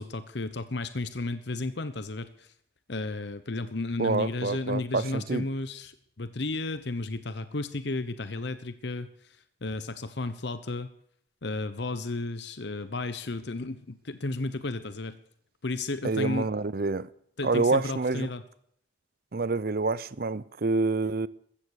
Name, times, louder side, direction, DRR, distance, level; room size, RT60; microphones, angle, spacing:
voice 1, 0.0-2.5 2.9-10.9 11.4-15.2 15.6-16.5 17.4-18.4, left 2 dB, 60° left, 0.9 m, -33 dB
voice 2, 4.0-5.4 16.0-17.1 17.4-18.3 19.3-21.3, right 3 dB, 50° right, 0.6 m, -27 dB
14.5 x 14.5 x 6.5 m
head